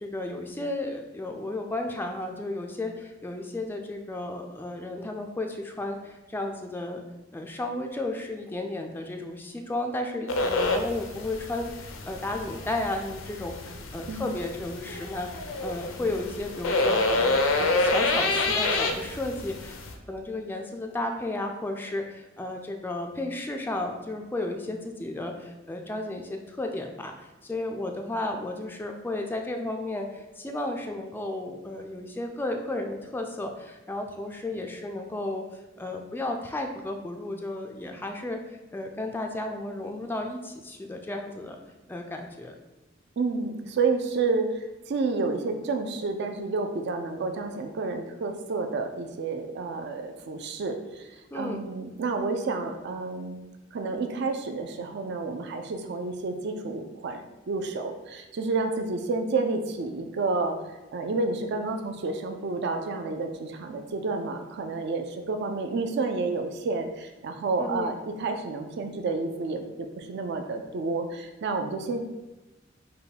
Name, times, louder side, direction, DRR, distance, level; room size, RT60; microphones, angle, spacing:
voice 1, 0.0-7.0 7.3-19.8 20.1-38.4 38.7-41.6 41.9-42.6 51.3-51.6 67.6-67.9, left 2 dB, 10° left, 3 dB, 0.3 m, -33 dB
sound 1, 10.3-19.9, left 2 dB, 85° left, 0.6 m, -28 dB
voice 2, 43.2-53.4 53.7-60.5 60.9-72.0, right 3 dB, 60° right, 5 dB, 0.4 m, -30 dB
5.5 x 2.2 x 4.0 m, 1.1 s
head